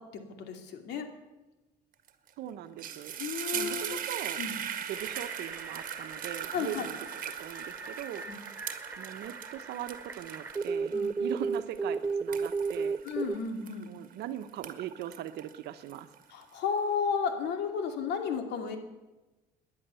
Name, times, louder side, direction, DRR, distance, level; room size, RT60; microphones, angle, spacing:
voice 1, 0.4-1.1 3.2-4.0 4.4-4.5 6.5-6.8 10.9-11.1 13.0-13.9 16.3-18.8, left 6 dB, 80° left, 5 dB, 2.6 m, -33 dB
sound 1, 2.1-2.3 2.6-14.1 14.5-16.4, right 9 dB, 55° right, 1.7 m, -40 dB
voice 2, 2.4-3.2 3.5-4.4 4.9-7.0 7.2-8.2 9.0-13.0 13.9-16.1, right 11 dB, 80° right, 10 dB, 1.1 m, -40 dB
sound 2, 5.0-13.4, right 4 dB, 10° right, 0.4 m, -35 dB
18.5 x 11.0 x 7.0 m, 1.1 s
cardioid pair, 110°, 17 cm